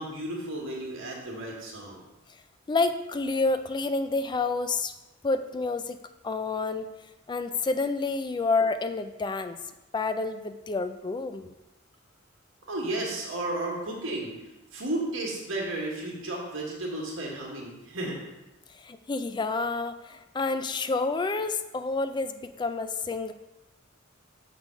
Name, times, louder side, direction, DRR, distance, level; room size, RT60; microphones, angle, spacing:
voice 1, 0.0-2.0 12.7-14.4 14.7-18.2, right 1 dB, 75° right, -2 dB, 1.6 m, -33 dB
voice 2, 2.7-4.9 5.2-6.0 6.2-6.9 7.3-9.6 9.9-11.5 18.7-23.3, left 3 dB, 25° left, 10 dB, 0.4 m, -29 dB
6.6 x 3.8 x 6.0 m, 1.0 s
head